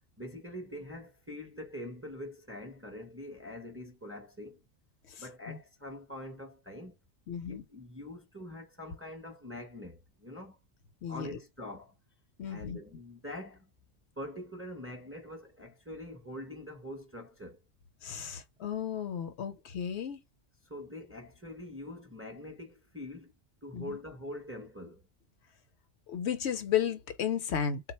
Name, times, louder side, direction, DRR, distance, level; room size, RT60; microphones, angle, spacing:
voice 1, 0.2-4.6 5.2-7.0 7.4-10.6 11.1-12.0 12.5-13.7 14.2-17.6 20.6-23.3 23.6-25.1, left 1 dB, 15° right, 0.7 m, -44 dB
voice 2, 5.1-5.6 7.3-7.6 11.0-11.3 12.4-12.8 18.0-20.2 23.7-24.0 26.1-27.8, left 8 dB, 70° left, 0.8 m, -34 dB
3.7 x 2.2 x 4.2 m
omnidirectional pair, 1.3 m